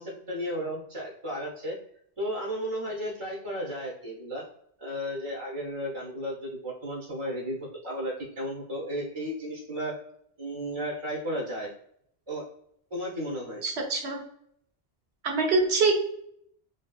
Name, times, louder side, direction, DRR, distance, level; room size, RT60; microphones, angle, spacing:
voice 1, 0.0-1.8 2.2-4.4 4.8-9.9 10.4-11.7 12.3-12.4 12.9-13.6, equal, 35° right, -4 dB, 0.7 m, -34 dB
voice 2, 13.6-14.2 15.2-16.1, right 3 dB, 80° right, 1 dB, 1.0 m, -24 dB
2.8 x 2.7 x 2.3 m, 0.68 s
omnidirectional pair, 1.1 m